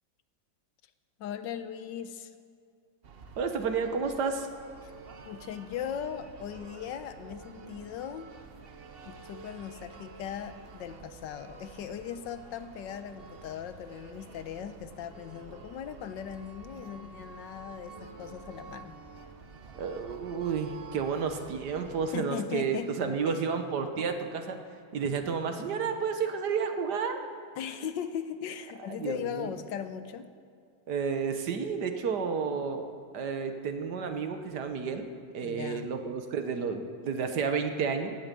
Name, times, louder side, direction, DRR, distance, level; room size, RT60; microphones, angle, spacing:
voice 1, 1.2-2.3 4.8-4.9 5.3-8.3 9.0-18.9 22.1-23.0 23.2-23.4 27.5-30.3 35.4-35.9, left 8 dB, 80° left, 11 dB, 1.4 m, -38 dB
sound 1, 3.0-22.2, right 4 dB, 45° right, 0.8 m, -49 dB
voice 2, 3.4-4.5 19.7-24.6 24.9-27.2 28.9-29.5 30.9-32.9 33.1-35.1 35.3-38.1, right 5 dB, 65° right, 7 dB, 1.6 m, -31 dB
17.5 x 8.7 x 7.5 m, 2.4 s
omnidirectional pair, 2.0 m